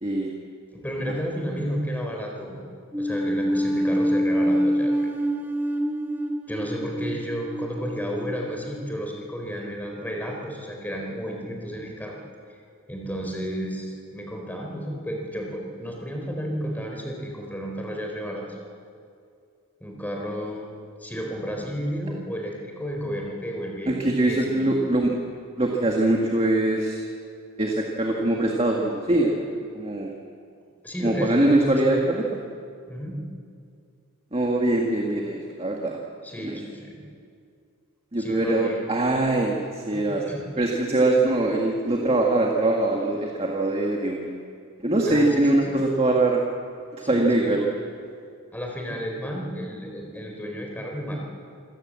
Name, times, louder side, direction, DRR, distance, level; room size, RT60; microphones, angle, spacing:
voice 1, 0.7-2.6 3.0-5.1 6.5-12.2 12.5-12.6 12.9-18.6 19.8-20.7 21.0-24.0 24.2-24.7 30.8-32.0 32.9-33.2 36.2-37.0 38.2-38.8 39.9-40.5 45.1-45.7 47.0-47.7 48.5-51.2, equal, 10° left, 0 dB, 4.1 m, -32 dB
sound 1, 2.9-9.3, equal, 10° right, 1.2 m, -26 dB
voice 2, 23.9-25.1 25.6-27.0 27.6-29.3 29.7-30.1 31.0-32.2 34.3-36.0 36.4-36.6 38.1-40.2 40.6-44.4 44.8-46.4 47.0-47.6, right 2 dB, 25° right, 0 dB, 1.8 m, -22 dB
26.5 x 17.0 x 7.6 m, 2.3 s
head